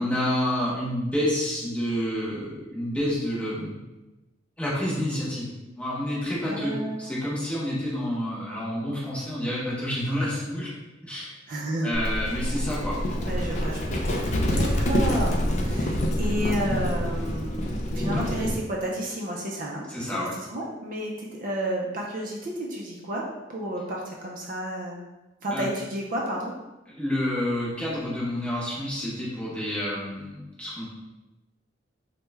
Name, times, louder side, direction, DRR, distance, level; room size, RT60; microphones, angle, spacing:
voice 1, 0.0-3.8 4.6-6.7 7.0-10.7 11.0-11.3 11.8-13.0 19.9-20.3 25.5-25.6 26.9-30.8, left 1 dB, 5° left, -7 dB, 0.8 m, -29 dB
voice 2, 6.4-7.0 11.5-11.9 13.2-23.2 23.5-25.0 25.4-26.5, right 1 dB, 45° right, -2 dB, 0.4 m, -31 dB
Livestock farm animals working animals, 11.9-18.6, equal, 35° left, 0.4 m, -26 dB
3.1 x 2.1 x 3.3 m, 1.1 s
head